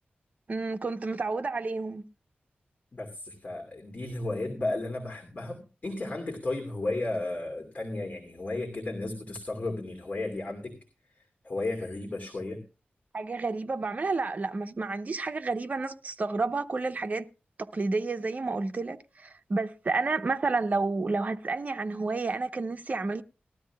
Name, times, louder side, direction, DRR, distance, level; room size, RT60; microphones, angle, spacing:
voice 1, 0.5-2.0 13.1-17.3 17.6-23.2, right 3 dB, 45° right, 0.9 m, -30 dB
voice 2, 2.9-10.8 11.4-12.6, left 2 dB, 40° left, 2.8 m, -34 dB
19.5 x 12.5 x 2.3 m
wide cardioid pair, 125°, 4 cm